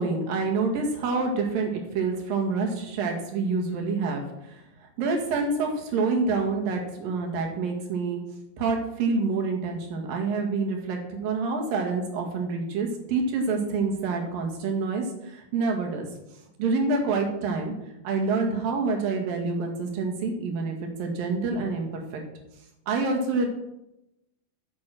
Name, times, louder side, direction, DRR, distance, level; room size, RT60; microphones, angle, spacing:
voice 1, 0.0-4.6 5.0-8.2 8.6-16.1 16.6-17.7 18.0-22.2 22.9-23.5, right 4 dB, 80° right, 2 dB, 3.5 m, -27 dB
9.3 x 8.5 x 6.2 m, 0.89 s
omnidirectional pair, 4.0 m